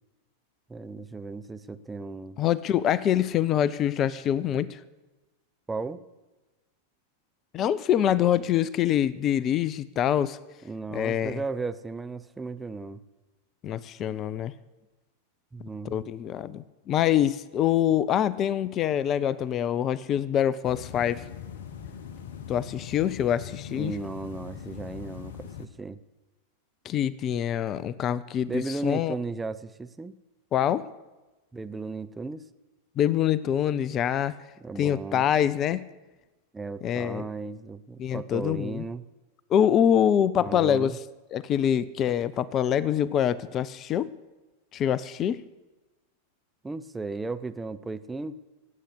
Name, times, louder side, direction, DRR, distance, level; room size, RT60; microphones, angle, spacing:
voice 1, 0.7-2.4 5.7-6.0 10.6-13.0 15.5-16.0 23.7-26.0 27.8-27.9 28.5-30.1 31.5-32.4 34.6-35.3 36.5-39.1 40.4-41.0 46.6-48.4, right 3 dB, 10° right, 10 dB, 0.6 m, -35 dB
voice 2, 2.4-4.8 7.5-10.4 10.9-11.4 13.6-14.5 15.8-21.2 22.5-23.9 26.8-29.1 30.5-30.9 33.0-34.4 34.8-35.8 36.8-37.3 38.0-38.8 39.5-41.0 41.3-44.1 44.7-45.4, left 10 dB, 30° left, 20 dB, 0.5 m, -25 dB
sound 1, 20.6-25.7, left 8 dB, 55° left, 1.1 m, -41 dB
17.5 x 8.3 x 7.9 m, 1.1 s
figure-of-eight pair, 90°, 0 cm